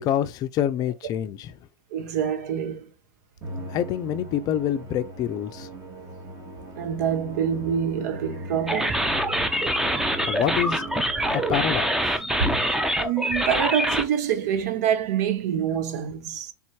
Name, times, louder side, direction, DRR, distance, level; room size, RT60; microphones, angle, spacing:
voice 1, 0.0-1.5 3.7-5.7 10.2-10.8 11.3-12.2, left 10 dB, 40° left, 0.5 m, -26 dB
voice 2, 1.9-2.9 6.8-9.2 10.1-10.3 12.3-12.7 13.0-16.5, right 8 dB, 65° right, 0.9 m, -26 dB
Musical instrument, 3.4-11.9, right 1 dB, 35° right, 2.2 m, -39 dB
sound 1, 8.7-14.0, equal, 5° right, 0.7 m, -25 dB
4.4 x 3.6 x 2.9 m
hypercardioid pair, 95°, 10 cm